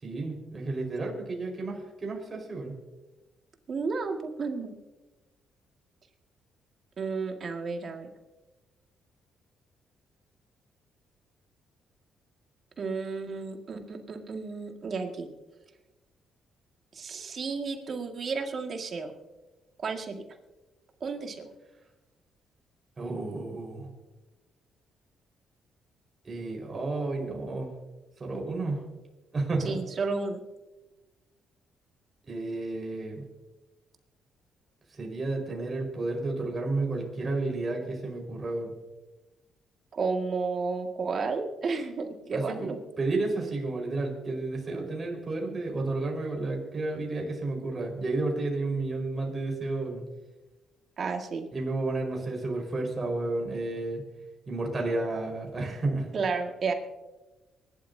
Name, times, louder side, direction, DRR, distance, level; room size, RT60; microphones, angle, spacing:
voice 1, 0.0-2.8 23.0-23.9 26.2-27.7 28.2-28.8 29.3-29.8 32.2-33.3 34.9-38.7 42.3-50.0 51.5-54.0 54.5-56.1, right 2 dB, 35° right, 0 dB, 4.9 m, -31 dB
voice 2, 3.7-4.7 7.0-8.1 12.8-15.3 16.9-19.1 19.8-20.2 21.0-21.5 29.6-30.4 39.9-42.8 51.0-51.4 56.1-56.7, right 4 dB, 50° right, 3 dB, 2.0 m, -32 dB
24.5 x 12.0 x 2.8 m, 1.1 s
cardioid pair, 90°, 0 cm